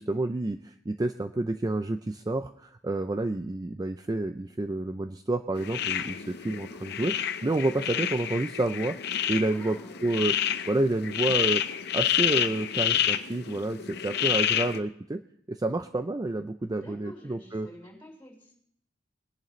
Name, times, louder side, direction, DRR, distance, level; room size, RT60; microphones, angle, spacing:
voice 1, 0.0-9.0 9.3-9.8 10.0-10.4 10.7-11.6 11.9-15.2 15.5-17.7, right 2 dB, 20° right, 8 dB, 0.4 m, -29 dB
sound 1, 5.5-14.8, left 10 dB, 60° left, 0.7 m, -29 dB
voice 2, 9.5-10.0 16.7-18.5, equal, 10° left, -3 dB, 6.5 m, -48 dB
21.5 x 11.0 x 3.1 m, 0.65 s
head